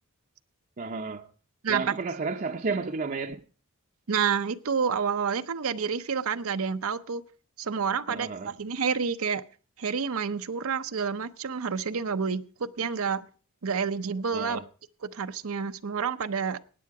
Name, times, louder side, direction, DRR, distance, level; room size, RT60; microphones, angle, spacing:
voice 1, 0.8-1.3 1.7-3.4 8.1-8.5 14.3-14.6, right 4 dB, 40° right, 0.7 m, -32 dB
voice 2, 1.6-1.9 4.1-7.2 7.6-9.4 9.8-13.2 13.6-14.6 15.0-16.7, right 6 dB, 75° right, 0.7 m, -29 dB
17.0 x 9.3 x 4.7 m
head